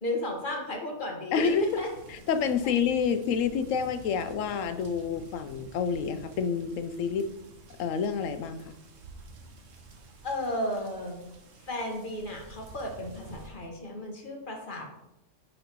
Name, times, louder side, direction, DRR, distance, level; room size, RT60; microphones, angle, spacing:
voice 1, 0.0-1.5 1.8-1.9 10.2-11.2 11.6-14.9, left 1 dB, 40° left, 0 dB, 1.6 m, -34 dB
voice 2, 1.3-1.7 2.3-7.3 7.8-8.7, left 6 dB, 80° left, 10 dB, 1.0 m, -28 dB
sound 1, 1.3-13.5, right 3 dB, 70° right, 1.3 m, -50 dB
9.8 x 5.4 x 3.0 m, 0.87 s
omnidirectional pair, 1.3 m